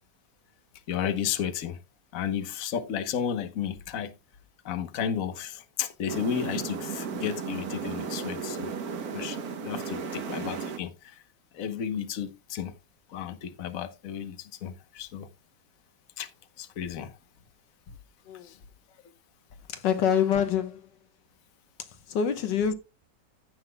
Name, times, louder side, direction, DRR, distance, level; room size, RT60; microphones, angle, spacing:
voice 1, 0.9-1.8 2.1-4.1 4.6-8.7 9.1-9.4 9.6-11.2 11.5-12.7 13.1-15.3 16.2-16.3 16.6-17.1 18.4-18.6, left 8 dB, 55° left, 1.3 m, -33 dB
sound 1, 6.1-10.8, right 5 dB, 60° right, 1.5 m, -35 dB
voice 2, 19.7-20.8 22.1-22.7, left 8 dB, 85° left, 1.7 m, -25 dB
16.0 x 5.8 x 2.2 m
omnidirectional pair, 1.9 m